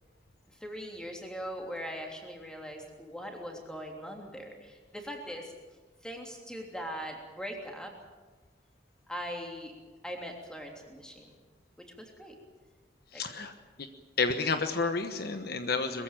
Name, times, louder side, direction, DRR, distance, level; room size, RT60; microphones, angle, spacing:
voice 1, 0.5-5.5 6.0-7.9 9.1-9.7 10.0-11.4 11.8-12.4 13.1-13.2, equal, 5° left, 1 dB, 3.2 m, -41 dB
voice 2, 13.1-13.5 14.2-16.0, left 4 dB, 55° left, 7 dB, 1.2 m, -30 dB
21.5 x 15.5 x 9.1 m, 1.3 s
head